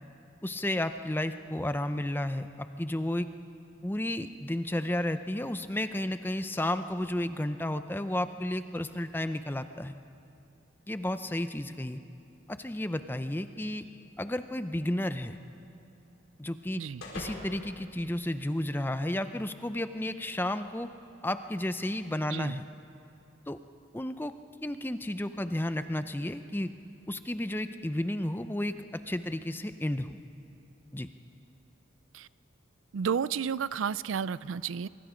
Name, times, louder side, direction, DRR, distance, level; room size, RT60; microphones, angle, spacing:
voice 1, 0.4-3.3 3.8-9.9 10.9-12.0 12.5-13.9 14.2-15.4 16.4-16.8 17.1-20.9 21.2-22.6 23.5-23.6 23.9-24.3 24.6-26.7 27.1-30.2 30.9-31.1, left 1 dB, 10° left, 10 dB, 0.5 m, -32 dB
sound 1, 14.4-18.8, left 1 dB, 85° left, 4.4 m, -48 dB
voice 2, 22.3-22.6 32.1-32.3 32.9-34.9, right 7 dB, 80° right, 18 dB, 0.4 m, -32 dB
24.5 x 23.5 x 5.1 m, 2.6 s
head